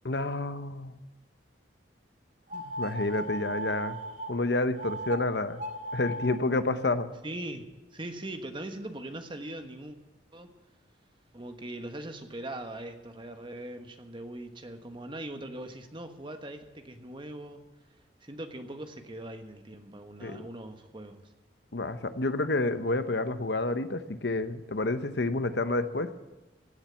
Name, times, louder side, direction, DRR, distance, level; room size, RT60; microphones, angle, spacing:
voice 1, 0.0-1.0 2.5-4.0 4.3-5.6 5.9-7.1 20.2-20.5 21.7-26.1, left 2 dB, 65° left, 11 dB, 0.9 m, -29 dB
sound 1, 2.5-4.3 4.8-5.2 5.5-6.4, right 2 dB, 45° right, 2.0 m, -36 dB
voice 2, 7.2-10.0 10.3-10.5 11.3-17.6 18.2-21.2, right 1 dB, 30° right, 6 dB, 1.3 m, -41 dB
16.5 x 7.5 x 8.4 m, 1.1 s
head